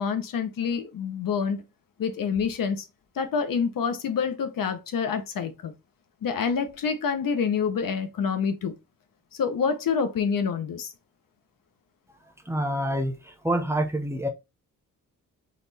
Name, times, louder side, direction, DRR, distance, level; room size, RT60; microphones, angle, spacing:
voice 1, 0.0-1.6 2.0-2.9 3.1-5.7 6.2-8.7 9.3-10.9, left 6 dB, 75° left, 0.9 m, -27 dB
voice 2, 12.5-14.3, right 1 dB, 10° right, 0.9 m, -27 dB
4.2 x 3.1 x 4.0 m
wide cardioid pair, 125°, 34 cm